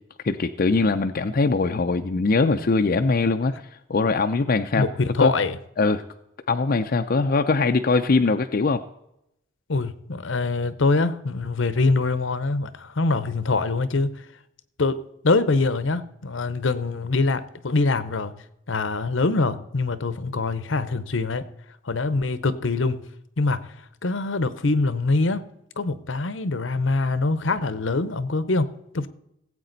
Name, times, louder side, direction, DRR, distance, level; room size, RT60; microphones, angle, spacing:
voice 1, 0.2-3.5 3.9-4.8 5.2-5.3 5.8-6.0 6.5-8.8, left 3 dB, 45° left, 6 dB, 0.5 m, -21 dB
voice 2, 4.8-5.6 9.7-14.2 14.8-18.3 18.7-21.5 21.8-23.0 23.4-25.4 25.8-29.1, left 3 dB, 70° left, 14 dB, 0.8 m, -24 dB
17.0 x 8.4 x 4.0 m, 0.81 s
head